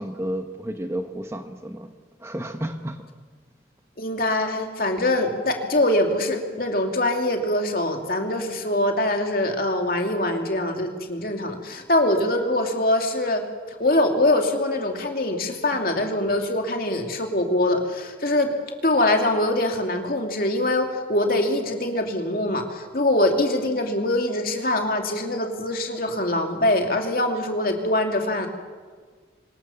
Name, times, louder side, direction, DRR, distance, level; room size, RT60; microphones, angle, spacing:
voice 1, 0.0-1.9 2.2-3.0, right 1 dB, 15° right, 7 dB, 1.0 m, -31 dB
voice 2, 4.0-13.4 13.8-18.5 18.8-28.5, left 1 dB, 50° left, 3 dB, 2.6 m, -23 dB
24.5 x 19.5 x 7.2 m, 1.5 s
head